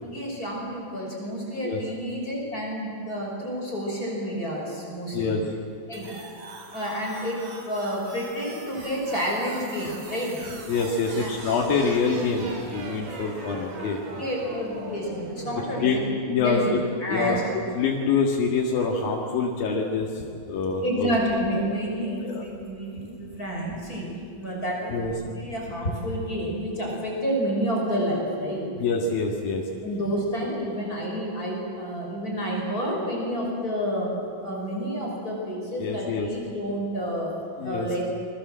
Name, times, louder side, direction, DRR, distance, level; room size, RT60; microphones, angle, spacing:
voice 1, 0.0-5.4 5.9-6.1 6.7-10.4 11.1-11.3 14.1-16.0 16.4-16.7 17.0-17.4 20.8-28.7 29.8-34.1 34.4-37.3 37.6-38.0, equal, 25° left, -2 dB, 6.2 m, -29 dB
sound 1, 5.9-15.9, right 2 dB, 55° right, 4.1 m, -40 dB
voice 2, 10.7-14.0 15.8-16.8 17.1-17.4 17.8-20.1 20.5-21.2 22.1-22.5 24.9-25.1 28.8-29.6 35.8-36.3 37.6-37.9, left 4 dB, 85° left, -2 dB, 3.9 m, -25 dB
29.0 x 23.5 x 7.7 m, 2.3 s
omnidirectional pair, 4.0 m